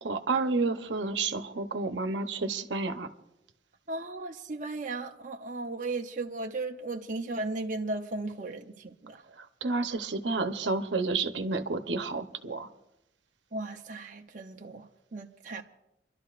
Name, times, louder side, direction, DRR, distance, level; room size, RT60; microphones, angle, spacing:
voice 1, 0.0-3.1 9.4-12.7, right 3 dB, 80° right, 0.9 m, -30 dB
voice 2, 3.9-9.2 13.5-14.9 15.1-15.6, right 2 dB, 45° right, 0.7 m, -36 dB
29.0 x 12.0 x 2.5 m
head